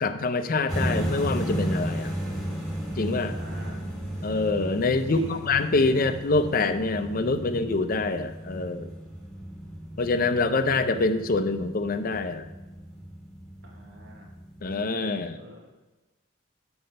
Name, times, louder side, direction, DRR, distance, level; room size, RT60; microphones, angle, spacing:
voice 1, 0.0-2.1 3.0-3.4 4.2-8.9 10.0-12.5 14.6-15.4, left 3 dB, 45° left, 10 dB, 0.5 m, -25 dB
sound 1, 0.7-14.7, equal, ahead, 1.8 m, -34 dB
voice 2, 3.2-3.8 5.1-5.4 13.6-14.3 15.4-15.6, equal, 60° right, -1 dB, 1.1 m, -45 dB
7.8 x 5.9 x 5.2 m, 1.1 s
head